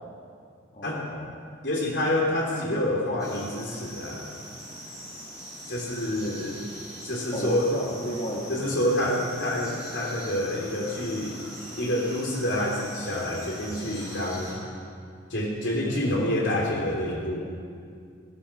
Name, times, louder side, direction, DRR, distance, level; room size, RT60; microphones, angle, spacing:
voice 1, 0.7-1.3 7.3-9.2, left 1 dB, 35° left, -5 dB, 1.9 m, -33 dB
voice 2, 1.6-4.3 5.7-6.6 7.0-7.7 8.5-11.4 11.8-14.6 15.3-17.4, left 1 dB, 65° left, -2 dB, 3.4 m, -27 dB
sound 1, 3.2-14.5, equal, 15° left, 4.8 m, -42 dB
15.0 x 14.5 x 5.9 m, 2.2 s
head